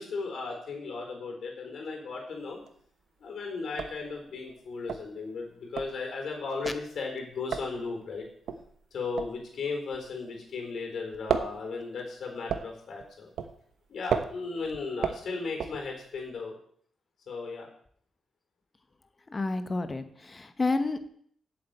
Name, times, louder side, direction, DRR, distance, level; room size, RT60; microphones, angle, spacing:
voice 1, 0.0-2.6 3.2-8.3 8.9-13.3 13.9-16.5 17.3-17.7, left 4 dB, 55° left, 2 dB, 4.2 m, -36 dB
sound 1, 2.4-2.9 3.2-3.3 3.6-10.7 10.9-16.3, right 7 dB, 80° right, 1.0 m, -35 dB
voice 2, 19.3-21.1, left 3 dB, 25° left, 10 dB, 1.0 m, -30 dB
8.0 x 8.0 x 8.1 m, 0.62 s
wide cardioid pair, 145°, 0 cm